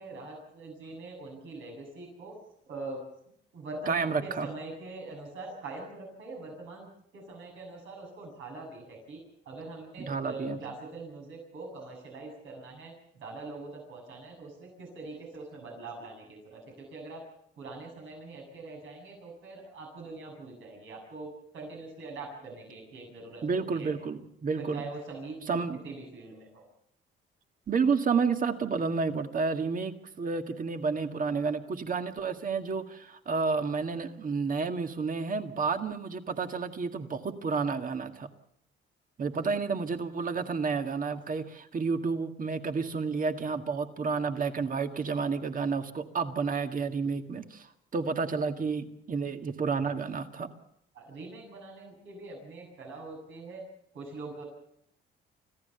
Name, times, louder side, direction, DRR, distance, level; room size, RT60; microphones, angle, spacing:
voice 1, 0.0-2.3 2.7-3.0 3.5-17.2 17.6-23.9 24.6-26.7 39.3-39.5 50.9-53.6 53.9-54.4, right 3 dB, 80° right, 1 dB, 7.5 m, -43 dB
voice 2, 3.9-4.5 10.0-10.6 23.4-24.8 25.5-25.8 27.7-38.3 39.2-50.5, right 5 dB, 45° right, 7 dB, 1.9 m, -30 dB
26.0 x 15.0 x 6.8 m, 0.71 s
cardioid pair, 90°, 20 cm